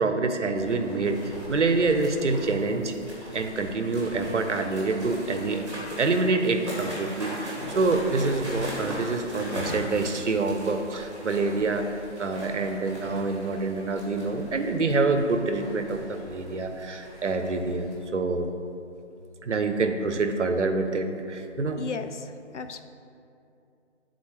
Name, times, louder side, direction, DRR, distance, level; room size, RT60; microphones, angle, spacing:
voice 1, 0.0-2.9 3.3-5.6 6.0-18.5 19.4-21.8, right 3 dB, 70° right, 7 dB, 0.6 m, -26 dB
sound 1, 0.5-17.9, equal, 25° right, 1.5 m, -39 dB
voice 2, 21.8-22.1 22.5-22.8, left 5 dB, 70° left, 8 dB, 0.5 m, -33 dB
8.3 x 4.0 x 3.2 m, 2.6 s
figure-of-eight pair, 180°, 36 cm